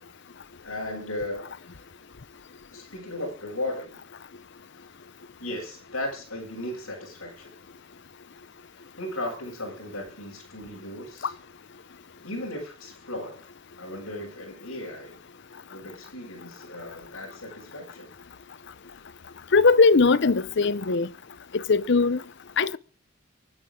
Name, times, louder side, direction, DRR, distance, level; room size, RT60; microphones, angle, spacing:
voice 1, 0.6-1.8 2.7-4.0 5.4-7.6 9.0-11.3 12.2-13.4 13.8-15.1 15.7-18.1, left 1 dB, 80° left, 7.5 m, -36 dB
voice 2, 19.5-21.1 21.7-22.2 22.6-22.8, left 4 dB, 55° left, 0.7 m, -19 dB
24.5 x 10.0 x 3.7 m
head